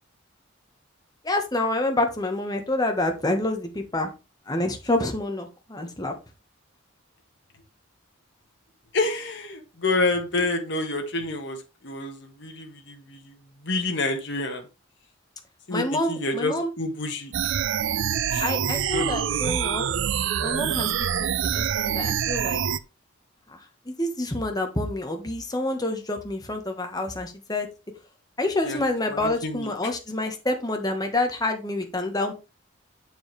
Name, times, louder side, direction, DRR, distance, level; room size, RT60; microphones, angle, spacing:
voice 1, 1.2-4.1 4.5-6.1 15.7-16.7 18.4-19.8 20.4-20.9 21.2-22.6 23.5-23.6 23.9-27.7 28.4-32.3, left 2 dB, 20° left, 4 dB, 1.3 m, -27 dB
voice 2, 8.9-14.7 15.7-17.5 18.3-18.5 18.9-19.4 20.8-21.0 28.6-28.8 29.1-29.9, left 2 dB, 60° left, 4 dB, 1.7 m, -29 dB
sound 1, 17.3-22.8, right 8 dB, 70° right, 0.4 m, -26 dB
7.2 x 7.1 x 3.3 m, 0.27 s
head